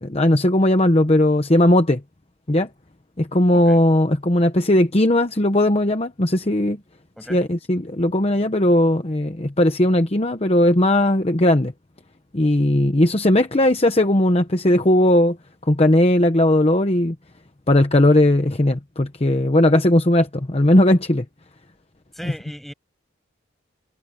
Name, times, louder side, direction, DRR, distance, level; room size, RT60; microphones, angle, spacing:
voice 1, 0.0-2.0 2.5-2.7 3.2-6.8 7.3-11.7 12.3-15.4 15.7-17.2 17.7-21.2, left 1 dB, 30° left, 1.0 m, -17 dB
voice 2, 22.1-22.7, equal, ahead, 7.7 m, -37 dB
head